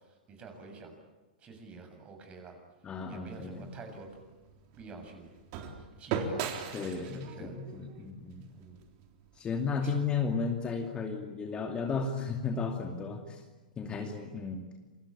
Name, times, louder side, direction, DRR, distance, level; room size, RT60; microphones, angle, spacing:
voice 1, 0.3-0.9 1.4-2.6 3.1-4.1 4.8-5.3 6.0-6.5 6.8-7.5 8.5-8.8 9.8-9.9, right 4 dB, 25° right, 5 dB, 7.5 m, -48 dB
voice 2, 2.8-3.7 6.7-8.4 9.4-13.4 13.8-14.6, left 5 dB, 20° left, 4 dB, 2.6 m, -34 dB
sound 1, 3.3-9.4, right 6 dB, 45° right, 3.9 m, -40 dB
28.0 x 23.5 x 8.8 m, 1.2 s
hypercardioid pair, 130°, 5 cm